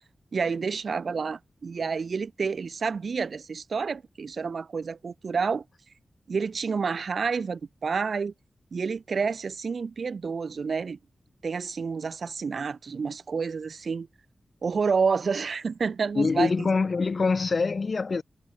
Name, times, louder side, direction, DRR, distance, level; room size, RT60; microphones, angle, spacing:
voice 1, 0.3-5.6 6.3-8.3 8.7-11.0 11.4-14.1 14.6-16.7, right 5 dB, 70° right, 1.3 m, -29 dB
voice 2, 16.2-18.2, left 4 dB, 60° left, 0.3 m, -24 dB
cardioid pair, 55°, 0 cm